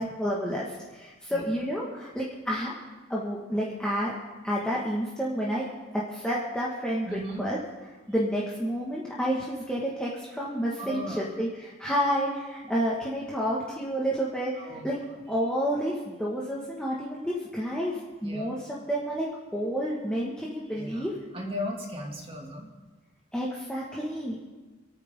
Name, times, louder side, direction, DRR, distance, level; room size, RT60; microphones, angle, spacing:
voice 1, 0.0-2.7 3.1-4.1 4.4-5.7 5.9-7.6 8.1-15.0 15.3-18.6 18.9-19.3 19.5-21.1 23.3-24.4, equal, 5° left, -6 dB, 1.8 m, -30 dB
voice 2, 7.0-7.4 10.8-11.3 14.6-14.9 18.2-18.5 20.8-21.1 21.3-22.7, left 1 dB, 30° right, 0 dB, 2.6 m, -36 dB
27.5 x 9.4 x 3.8 m, 1.3 s
head